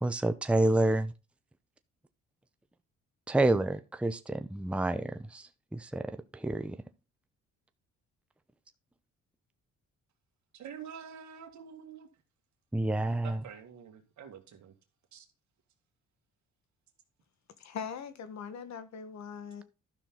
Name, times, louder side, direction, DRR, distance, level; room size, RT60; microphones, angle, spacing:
voice 1, 0.0-1.1 3.3-6.8 12.7-13.4, right 2 dB, 5° right, 0.7 m, -29 dB
voice 2, 10.5-12.1 13.1-14.7 15.1-15.3, right 7 dB, 70° right, 2.0 m, -47 dB
voice 3, 17.6-19.6, left 7 dB, 65° left, 1.4 m, -41 dB
12.0 x 6.0 x 3.8 m
cardioid pair, 90°, 30 cm